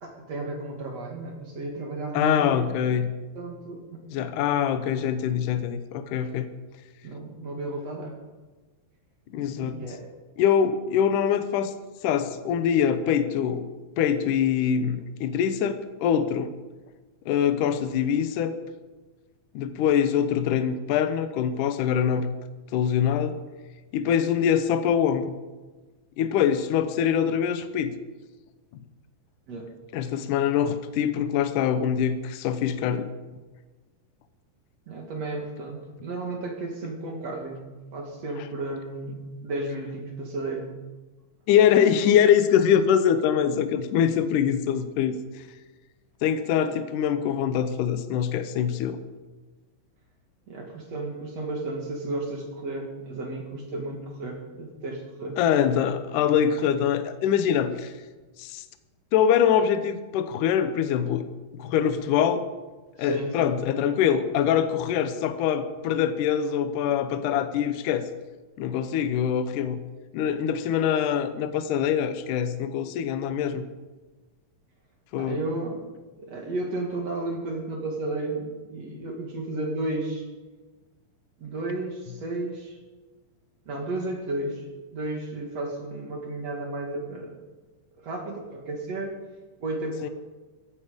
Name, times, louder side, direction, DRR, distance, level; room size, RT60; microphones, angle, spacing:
voice 1, 0.0-3.1 3.4-4.3 7.0-8.2 9.6-10.1 29.5-29.7 34.9-40.7 50.5-55.4 63.0-63.5 75.2-75.8 76.2-80.3 81.4-82.8 83.7-84.7 84.9-87.3 88.0-89.2 89.6-90.1, right 2 dB, 50° right, 1 dB, 2.9 m, -33 dB
voice 2, 2.1-3.1 4.1-6.5 9.3-9.8 10.4-11.7 12.0-13.7 14.0-16.5 17.3-18.6 19.5-22.3 22.7-23.4 23.9-25.4 26.2-27.9 29.9-33.1 41.5-45.2 46.2-49.0 55.4-57.9 58.4-58.6 59.1-61.2 61.5-62.4 63.0-68.1 68.6-69.8 70.1-73.6 75.1-75.4 90.0-90.1, left 8 dB, 70° left, 10 dB, 2.3 m, -24 dB
16.5 x 14.5 x 5.2 m, 1.3 s
omnidirectional pair, 4.2 m